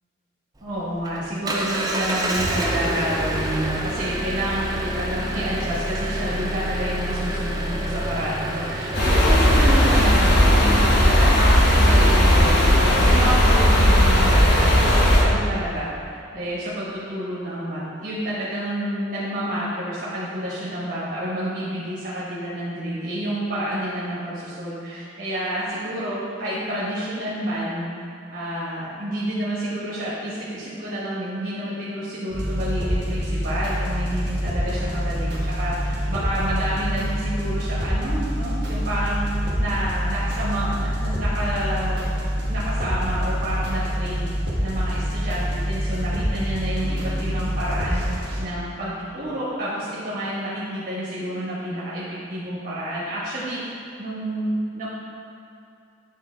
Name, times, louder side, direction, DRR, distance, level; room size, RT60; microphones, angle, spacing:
Engine, 0.6-10.1, right 1 dB, 20° right, 0.5 m, -28 dB
voice 1, 0.6-27.9 28.3-42.1 42.5-44.3 44.6-54.9, right 1 dB, 45° right, -11 dB, 1.2 m, -29 dB
sound 1, 8.9-15.2, equal, 60° left, 1.1 m, -16 dB
sound 2, 32.3-48.4, equal, 60° right, 1.4 m, -26 dB
8.4 x 4.5 x 3.8 m, 2.6 s
head